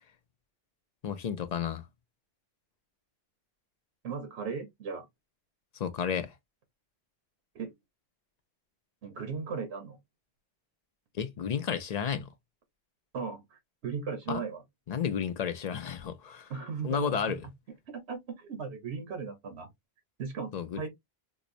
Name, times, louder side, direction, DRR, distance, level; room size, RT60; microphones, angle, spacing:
voice 1, 1.0-1.8 5.7-6.3 11.2-12.3 14.3-14.4 14.9-16.5 16.8-17.4 20.5-20.8, left 7 dB, 55° left, 0.5 m, -32 dB
voice 2, 4.0-5.1 7.5-7.7 9.0-10.0 13.1-14.6 16.5-17.4 17.9-19.7 20.2-20.9, right 5 dB, 85° right, 1.1 m, -37 dB
4.5 x 2.1 x 2.5 m
omnidirectional pair, 1.1 m